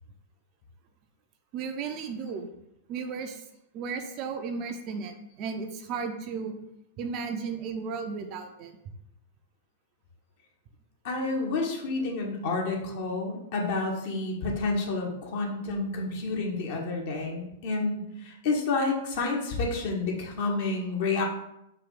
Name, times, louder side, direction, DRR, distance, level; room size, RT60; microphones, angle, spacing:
voice 1, 1.5-2.5 2.9-3.4 3.7-6.6 7.0-8.7, right 5 dB, 35° right, 6 dB, 0.5 m, -34 dB
voice 2, 11.0-21.2, left 3 dB, 50° left, 0 dB, 1.0 m, -29 dB
4.7 x 2.6 x 3.8 m, 0.80 s
figure-of-eight pair, 100°, 0 cm